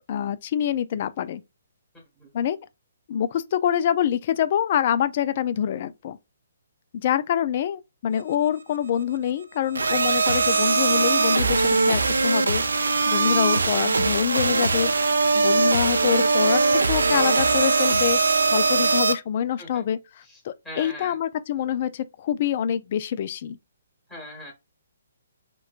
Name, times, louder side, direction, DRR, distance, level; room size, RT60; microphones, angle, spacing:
voice 1, 0.1-1.4 2.3-2.6 3.1-6.2 6.9-14.9 15.3-18.2 18.5-20.0 20.4-23.6, left 9 dB, 45° left, 0.3 m, -25 dB
sound 1, 9.7-19.1, right 4 dB, 80° right, 0.4 m, -21 dB
voice 2, 20.2-21.2 24.1-24.5, left 1 dB, 5° left, 1.3 m, -40 dB
2.9 x 2.2 x 2.4 m
figure-of-eight pair, 135°, 0 cm